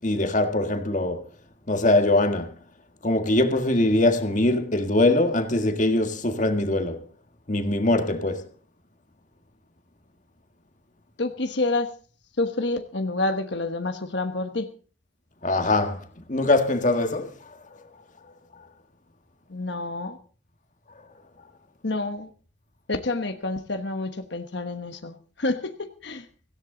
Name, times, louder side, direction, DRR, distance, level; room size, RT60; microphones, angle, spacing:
voice 1, 0.0-1.3 1.7-2.5 3.0-7.0 7.5-8.5 15.4-17.9 18.5-18.7 20.9-21.0, left 2 dB, 40° left, 1.7 m, -23 dB
voice 2, 11.2-11.9 12.4-14.7 19.5-20.2 21.8-22.3 22.9-26.3, left 2 dB, 60° left, 1.2 m, -28 dB
17.0 x 16.0 x 3.9 m
head